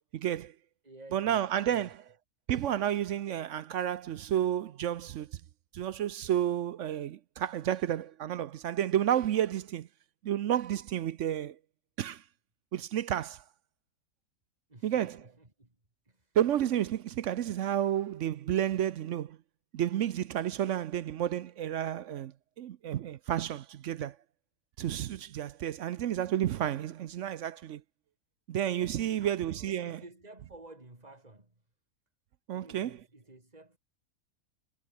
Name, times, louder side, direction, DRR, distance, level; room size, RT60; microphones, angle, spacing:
voice 1, 0.1-0.5 1.1-1.9 2.5-5.4 5.7-9.9 10.2-11.6 12.0-12.2 12.7-13.4 14.8-15.2 16.3-19.4 19.7-24.2 24.8-27.8 28.5-30.0 32.5-32.9, right 10 dB, 65° right, 0.9 m, -31 dB
voice 2, 0.8-1.9 14.7-15.8 16.0-16.4 28.8-31.6 32.5-33.8, right 2 dB, 25° right, 3.5 m, -53 dB
omnidirectional pair, 1.5 m